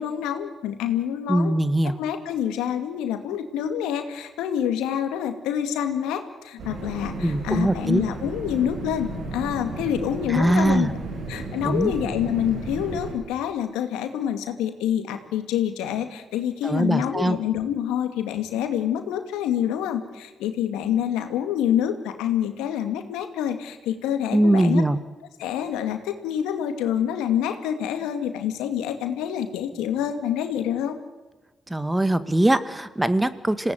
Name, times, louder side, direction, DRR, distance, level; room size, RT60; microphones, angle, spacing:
voice 1, 0.0-1.5 1.8-10.9 11.3-24.9 25.4-31.0, left 9 dB, 80° left, 7 dB, 2.3 m, -27 dB
voice 2, 1.3-2.0 7.2-8.0 10.3-10.9 11.6-11.9 16.6-17.4 24.3-25.0 31.7-33.7, right 1 dB, 15° right, 12 dB, 1.9 m, -21 dB
sound 1, 6.6-13.2, right 2 dB, 75° right, 7.7 m, -34 dB
27.0 x 18.0 x 9.3 m, 1.2 s
hypercardioid pair, 45°, 0 cm